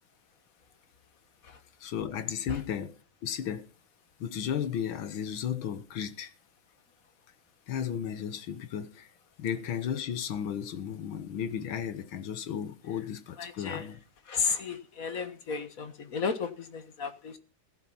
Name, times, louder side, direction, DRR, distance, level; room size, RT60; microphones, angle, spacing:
voice 1, 1.8-3.0 3.2-3.7 4.2-6.3 7.7-9.1 9.4-14.0, left 8 dB, 80° left, 2.0 m, -34 dB
voice 2, 13.4-13.9 14.3-17.4, left 5 dB, 45° left, 1.6 m, -33 dB
15.0 x 11.0 x 5.6 m
omnidirectional pair, 2.2 m